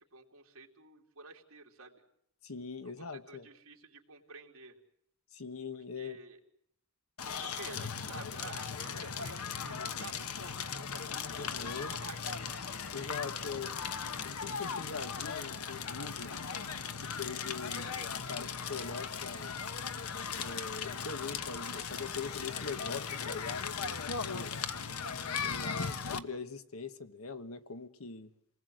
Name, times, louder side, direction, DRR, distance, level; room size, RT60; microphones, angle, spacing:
voice 1, 0.0-2.0 2.8-4.8 5.9-6.4 7.4-12.5, right 4 dB, 65° right, 1 dB, 3.1 m, -51 dB
voice 2, 2.4-3.5 5.3-6.2 11.3-11.9 12.9-13.8 14.2-16.3 17.0-19.5 20.4-24.0 24.3-24.5 25.4-28.3, left 4 dB, 70° left, 11 dB, 1.2 m, -42 dB
Crackle, 7.2-26.2, left 6 dB, 90° left, 1.1 m, -38 dB
28.0 x 20.0 x 7.8 m, 0.72 s
head